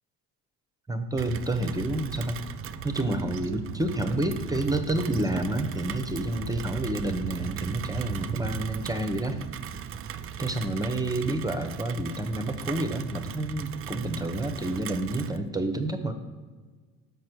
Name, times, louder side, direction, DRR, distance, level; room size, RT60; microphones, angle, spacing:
voice 1, 0.9-2.4 2.8-9.4 10.4-16.1, right 1 dB, 10° right, 7 dB, 0.8 m, -29 dB
Rain, 1.2-15.4, right 8 dB, 35° right, 0.4 m, -37 dB
6.5 x 5.4 x 6.1 m, 1.4 s
hypercardioid pair, 65°, 42 cm